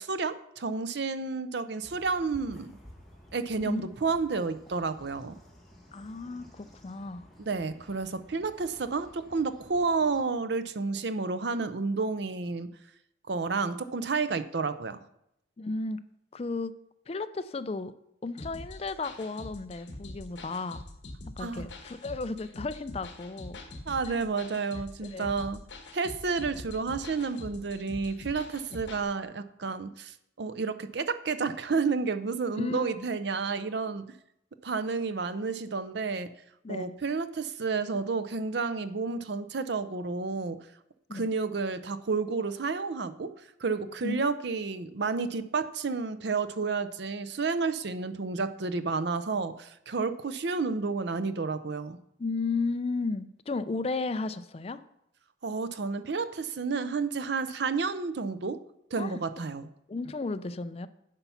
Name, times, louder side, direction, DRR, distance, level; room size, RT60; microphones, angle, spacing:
voice 1, 0.0-2.7 3.3-5.4 7.4-12.7 13.3-15.0 21.4-21.7 23.9-25.6 25.9-34.1 34.6-36.3 36.7-40.7 41.1-43.3 43.6-52.0 55.4-58.6 58.9-59.7, right 4 dB, 60° right, 12 dB, 0.5 m, -31 dB
sound 1, 1.8-10.2, equal, ahead, 1.6 m, -54 dB
voice 2, 5.9-7.3 15.6-16.0 16.3-16.7 17.1-17.9 18.2-20.8 21.4-23.6 24.1-24.3 25.0-25.3 32.5-33.0 36.6-37.0 41.1-41.3 44.0-44.2 52.2-54.8 59.0-59.2 59.9-60.9, left 3 dB, 30° left, 12 dB, 0.4 m, -34 dB
sound 2, 18.4-29.0, left 2 dB, 65° left, 1.6 m, -44 dB
9.8 x 5.8 x 5.6 m, 0.80 s
head